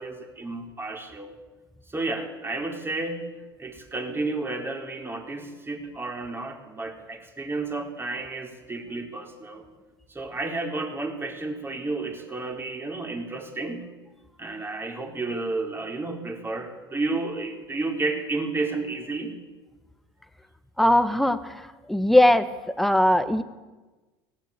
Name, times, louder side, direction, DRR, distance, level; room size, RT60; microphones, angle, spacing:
voice 1, 0.0-1.3 1.9-3.3 3.6-9.6 10.1-13.9 14.4-19.3, right 3 dB, 15° right, 3 dB, 4.4 m, -31 dB
voice 2, 20.8-21.6 21.9-22.5 22.8-23.4, left 1 dB, ahead, 9 dB, 1.5 m, -19 dB
18.5 x 16.5 x 8.5 m, 1.2 s
hypercardioid pair, 85°, 13 cm